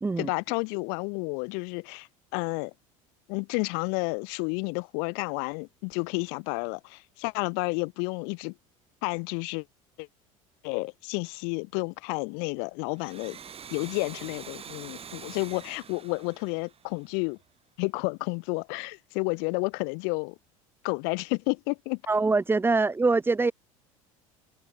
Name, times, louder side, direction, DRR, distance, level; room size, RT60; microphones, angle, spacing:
voice 1, 0.2-2.7 3.3-8.5 9.0-9.7 10.0-10.1 10.6-13.4 13.7-17.4 17.8-20.4 20.8-22.0, left 40 dB or more, 65° left, 2.1 m, -31 dB
Domestic sounds home sounds, 12.9-17.4, right 7 dB, 35° right, 2.5 m, -45 dB
voice 2, 22.1-23.5, right 3 dB, 10° right, 0.7 m, -23 dB
hypercardioid pair, 70°, 18 cm